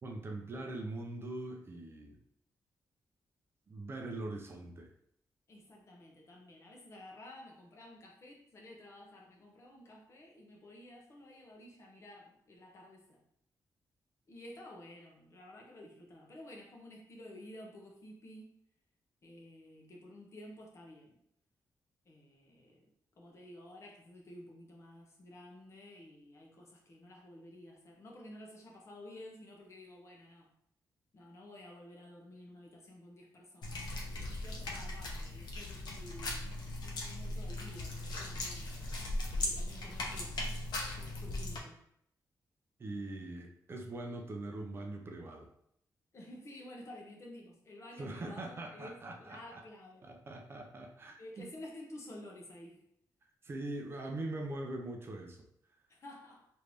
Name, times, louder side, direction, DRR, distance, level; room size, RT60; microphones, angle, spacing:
voice 1, 0.0-2.2 3.7-4.9 42.8-45.5 48.0-49.6 50.0-51.5 53.4-55.4, right 2 dB, 35° right, 2 dB, 0.4 m, -42 dB
voice 2, 5.5-13.2 14.3-18.6 19.2-21.1 22.0-22.9 23.2-30.5 31.1-36.5 36.8-38.7 39.3-40.4 41.2-41.8 46.1-50.1 51.2-52.8 55.9-56.5, left 1 dB, 40° left, -1 dB, 0.8 m, -52 dB
sound 1, 33.6-41.6, left 2 dB, 75° left, 0.7 m, -38 dB
3.2 x 2.6 x 3.3 m, 0.70 s
wide cardioid pair, 170°, 7 cm